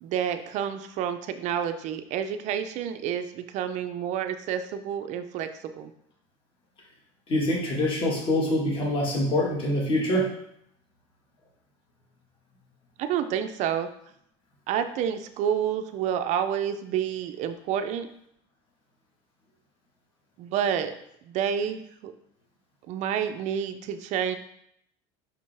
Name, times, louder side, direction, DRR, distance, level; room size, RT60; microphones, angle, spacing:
voice 1, 0.0-5.5 5.8-5.9 13.0-13.9 14.7-18.1 20.4-20.9 21.3-22.1 22.9-24.4, right 9 dB, 45° right, 9 dB, 0.5 m, -29 dB
voice 2, 7.3-10.3, left 1 dB, 35° left, -2 dB, 1.8 m, -25 dB
5.8 x 5.4 x 3.4 m, 0.71 s
cardioid pair, 150°, 16 cm